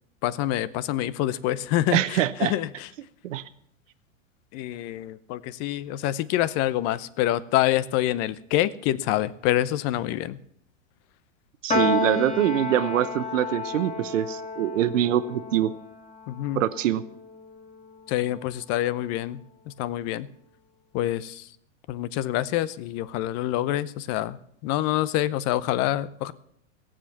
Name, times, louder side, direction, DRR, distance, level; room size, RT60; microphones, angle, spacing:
voice 1, 0.2-2.9 4.5-10.4 16.3-16.6 18.1-19.4 19.7-20.3 20.9-21.5 21.9-24.4 24.6-26.3, left 14 dB, 40° left, 17 dB, 0.8 m, -26 dB
voice 2, 1.9-2.5 3.2-3.4 11.6-15.7 16.6-17.0, right 12 dB, 75° right, 12 dB, 0.9 m, -24 dB
Piano, 11.7-18.2, left 3 dB, 20° left, 1.9 m, -31 dB
17.0 x 7.6 x 7.2 m, 0.72 s
hypercardioid pair, 110°, 39 cm